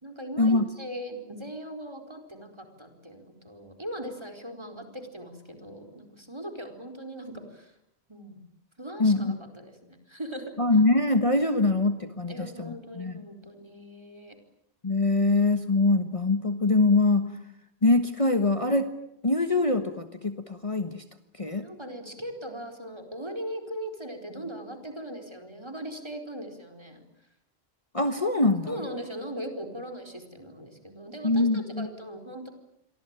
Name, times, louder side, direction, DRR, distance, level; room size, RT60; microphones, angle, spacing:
voice 1, 0.0-7.7 8.1-8.4 8.8-10.5 12.3-14.4 21.6-27.0 28.7-32.5, equal, 25° right, 7 dB, 4.5 m, -39 dB
voice 2, 9.0-9.4 10.6-13.1 14.8-17.3 17.8-18.9 19.2-21.0 21.4-21.7 27.9-28.7 31.2-31.9, left 2 dB, 30° left, 8 dB, 1.4 m, -23 dB
28.0 x 23.0 x 9.0 m, 0.79 s
omnidirectional pair, 1.1 m